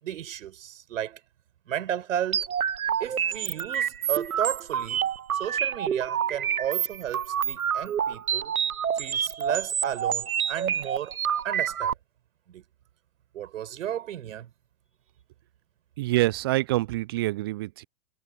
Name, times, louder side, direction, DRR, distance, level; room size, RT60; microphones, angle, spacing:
voice 1, 0.0-1.2 1.7-2.5 3.0-8.5 9.0-11.2 11.4-11.9 12.5-12.6 13.3-14.5, right 10 dB, 60° right, 5.7 m, -33 dB
sound 1, 2.3-11.9, right 8 dB, 75° right, 1.0 m, -28 dB
voice 2, 16.0-17.9, right 18 dB, 20° right, 0.3 m, -26 dB
figure-of-eight pair, 100°, 43 cm